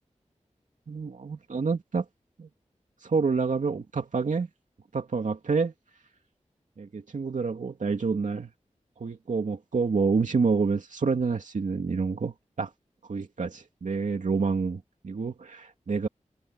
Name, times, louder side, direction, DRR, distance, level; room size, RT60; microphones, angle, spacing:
voice 1, 0.9-2.0 2.4-2.5 3.0-4.5 4.9-5.7 6.8-8.5 9.0-12.7 13.1-16.1, right 4 dB, 85° right, 2.6 m, -28 dB
open air
wide cardioid pair, 65°, 13 cm